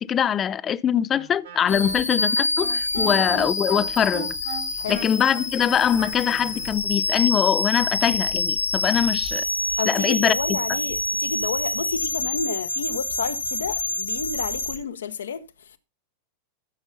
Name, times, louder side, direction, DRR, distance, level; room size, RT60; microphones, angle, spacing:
voice 1, 0.0-4.4 4.9-9.4 9.9-10.6, left 9 dB, 25° left, 0.6 m, -23 dB
Wind instrument woodwind instrument, 1.1-6.7, right 5 dB, 65° right, 3.7 m, -38 dB
sound 1, 1.7-14.8, left 2 dB, 80° left, 3.1 m, -27 dB
voice 2, 9.8-15.5, left 6 dB, 65° left, 1.2 m, -31 dB
14.0 x 7.0 x 4.0 m
figure-of-eight pair, 90°, 0 cm